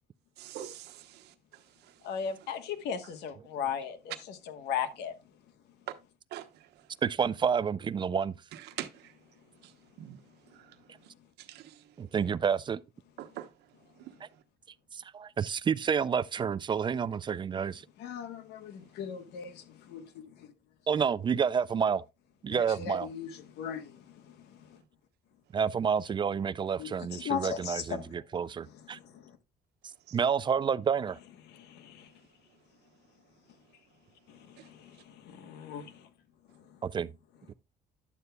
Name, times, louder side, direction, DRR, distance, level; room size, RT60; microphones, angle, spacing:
voice 1, 0.4-1.2 6.3-6.5 8.8-9.1 10.0-10.2 11.4-11.7 13.2-13.5 30.1-30.2, right 12 dB, 80° right, 1.0 m, -42 dB
voice 2, 2.0-5.1 18.0-20.5 22.5-24.6 26.8-28.0 28.9-29.3 31.5-32.1 34.3-36.1, left 7 dB, 80° left, 1.2 m, -38 dB
voice 3, 7.0-8.3 12.0-12.8 14.9-17.8 20.9-22.0 22.4-23.1 25.5-29.0 30.1-31.2 36.8-37.1 37.5-37.6, right 7 dB, 30° right, 0.4 m, -29 dB
11.0 x 7.9 x 2.2 m
cardioid pair, 110°, 17 cm